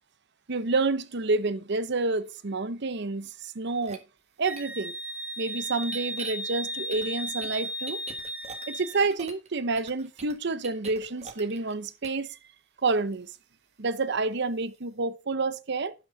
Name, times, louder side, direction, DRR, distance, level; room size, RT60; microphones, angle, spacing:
voice 1, 0.5-4.0 4.4-4.9 5.4-8.0 8.7-12.4 12.8-13.3 13.8-15.9, right 3 dB, 60° right, 0.8 m, -29 dB
sound 1, 3.8-4.0 4.6-4.7 5.8-6.3 6.9-9.5 9.8-11.7 12.0-12.2, right 5 dB, 35° right, 1.6 m, -43 dB
Wind instrument woodwind instrument, 4.4-9.0, right 1 dB, 10° right, 0.7 m, -35 dB
11.5 x 6.3 x 4.0 m
head